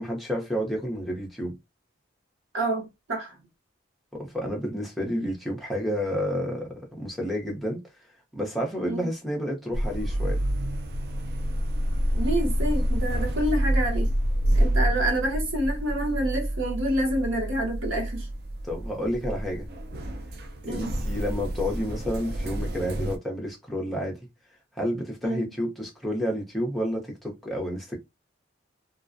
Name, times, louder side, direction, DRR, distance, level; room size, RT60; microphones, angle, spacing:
voice 1, 0.0-1.6 4.1-7.8 8.3-10.4 18.6-19.7 20.7-24.2 24.8-28.0, equal, ahead, 0.6 m, -30 dB
voice 2, 2.5-3.4 8.9-9.1 12.1-14.1 14.5-18.3 20.6-20.9 25.2-25.4, right 1 dB, 80° right, 0.9 m, -28 dB
sound 1, 9.7-23.2, right 1 dB, 50° right, 0.4 m, -28 dB
2.4 x 2.1 x 2.5 m
head